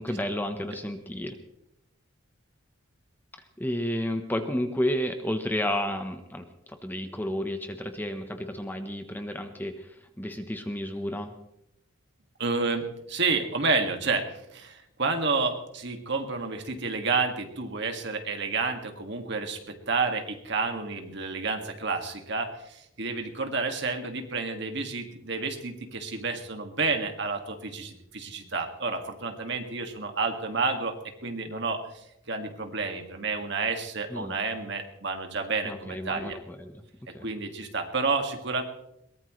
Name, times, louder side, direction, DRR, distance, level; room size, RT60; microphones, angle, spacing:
voice 1, 0.0-1.4 3.6-11.3 34.1-34.4 35.6-36.8 37.1-37.2, left 1 dB, 10° left, 6 dB, 1.0 m, -31 dB
voice 2, 12.4-31.0 31.2-31.8 32.3-36.4 37.1-38.6, right 4 dB, 55° right, 4 dB, 2.1 m, -30 dB
22.0 x 19.0 x 3.2 m, 0.80 s
head